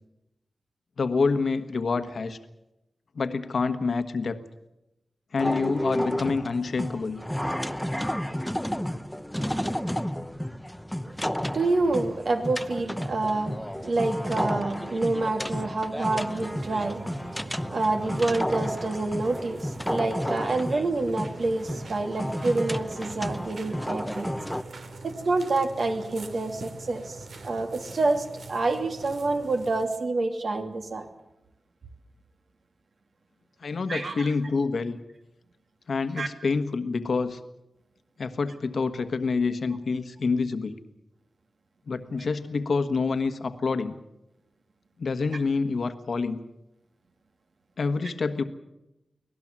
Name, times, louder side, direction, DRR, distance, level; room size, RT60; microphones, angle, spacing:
voice 1, 1.0-2.4 3.1-4.4 5.3-7.2 33.6-35.0 35.9-37.4 38.2-40.8 41.9-43.9 45.0-46.4 47.8-48.4, left 4 dB, 70° left, 9 dB, 1.4 m, -27 dB
sound 1, 5.4-24.6, equal, 5° left, 0.8 m, -32 dB
voice 2, 11.2-24.3 25.0-27.2 27.4-31.1 33.9-34.3 36.2-36.3, right 3 dB, 65° right, 4 dB, 2.7 m, -28 dB
sound 2, 16.3-30.0, right 3 dB, 85° right, 2.6 m, -44 dB
24.5 x 18.0 x 7.5 m, 0.92 s
wide cardioid pair, 110°, 0 cm